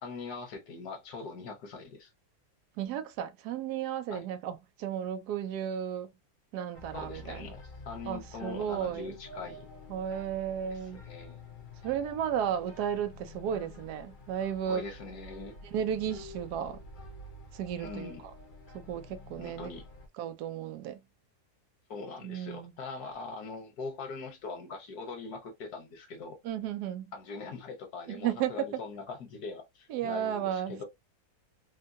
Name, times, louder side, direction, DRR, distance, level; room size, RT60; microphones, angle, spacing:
voice 1, 0.0-2.1 4.1-4.2 6.9-9.7 10.7-11.4 14.7-15.6 17.8-18.2 19.4-19.8 21.9-26.4 27.1-30.8, left 4 dB, 75° left, 1.5 m, -42 dB
voice 2, 2.8-6.1 6.5-7.5 8.0-9.2 9.9-11.0 11.8-14.8 15.6-16.8 17.5-18.1 18.7-19.7 20.2-21.0 22.2-22.7 26.4-27.1 28.1-28.7 29.9-30.8, right 9 dB, 90° right, 1.2 m, -34 dB
sound 1, 6.7-20.1, left 2 dB, 45° left, 0.7 m, -49 dB
3.6 x 2.2 x 2.6 m
omnidirectional pair, 1.6 m